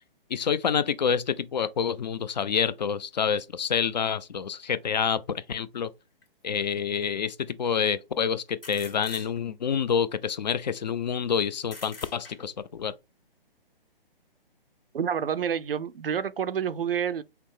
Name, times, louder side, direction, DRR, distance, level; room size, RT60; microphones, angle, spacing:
voice 1, 0.3-5.9 6.4-13.0, left 7 dB, 45° left, 0.4 m, -27 dB
sound 1, 6.2-6.3 8.6-9.7 11.6-12.7, left 3 dB, 70° left, 1.8 m, -45 dB
voice 2, 14.9-17.2, right 8 dB, 70° right, 0.5 m, -28 dB
5.7 x 2.1 x 3.3 m
figure-of-eight pair, 135°, 29 cm